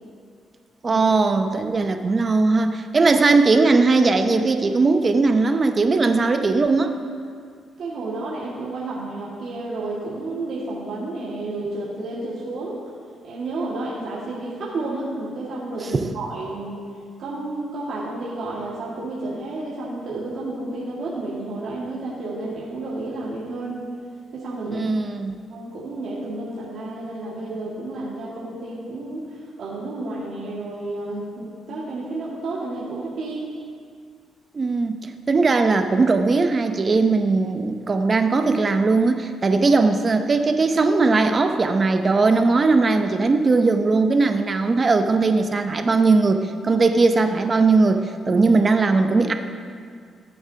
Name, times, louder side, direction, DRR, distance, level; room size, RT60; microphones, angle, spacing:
voice 1, 0.8-6.9 15.9-16.1 24.7-25.4 34.5-49.3, right 3 dB, 35° right, 7 dB, 0.7 m, -19 dB
voice 2, 7.8-12.8 13.2-16.8 17.2-23.8 24.3-24.9 25.5-33.5, right 2 dB, 70° right, -8 dB, 1.9 m, -31 dB
15.5 x 8.7 x 2.8 m, 2.1 s
cardioid pair, 95°, 0 cm